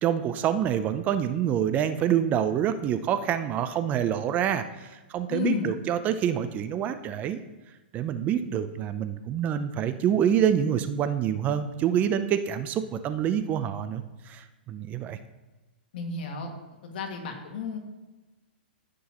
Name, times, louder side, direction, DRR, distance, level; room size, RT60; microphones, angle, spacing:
voice 1, 0.0-7.4 7.9-15.2, right 9 dB, 30° right, 10 dB, 0.5 m, -26 dB
voice 2, 5.3-5.7 15.9-16.5 16.8-17.8, left 5 dB, 65° left, 2 dB, 2.1 m, -32 dB
15.0 x 6.2 x 3.0 m, 1.1 s
hypercardioid pair, 135°, 6 cm